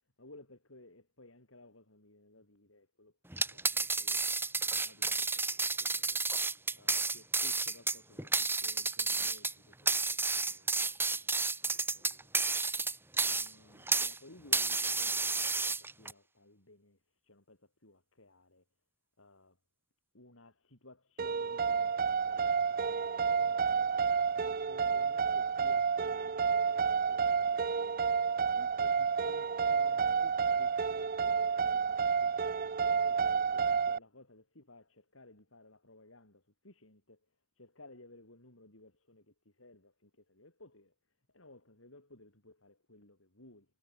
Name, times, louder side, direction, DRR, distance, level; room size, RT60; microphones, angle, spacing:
voice 1, 0.2-3.1 3.4-4.2 4.7-5.4 5.8-6.2 6.5-12.6 13.2-18.6 19.2-19.6 20.1-23.9 24.3-28.1 28.5-32.6 32.9-37.2 37.6-40.9 41.3-43.8, left 2 dB, 90° left, 6.5 m, -58 dB
sound 1, 3.3-14.2 14.5-16.1, right 3 dB, 10° right, 1.5 m, -31 dB
sound 2, 21.2-34.0, right 6 dB, 45° right, 0.6 m, -30 dB
head